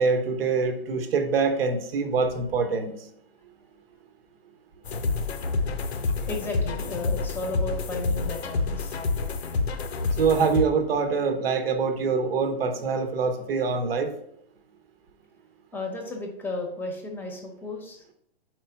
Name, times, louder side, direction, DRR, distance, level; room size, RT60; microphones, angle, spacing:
voice 1, 0.0-2.9 10.2-14.1, right 5 dB, 70° right, 7 dB, 1.0 m, -24 dB
sound 1, 4.8-10.6, left 3 dB, 90° left, 0.7 m, -28 dB
voice 2, 6.3-8.9 15.7-18.0, left 2 dB, 5° left, 2 dB, 0.8 m, -34 dB
4.8 x 4.5 x 4.4 m, 0.71 s
hypercardioid pair, 140°, 31 cm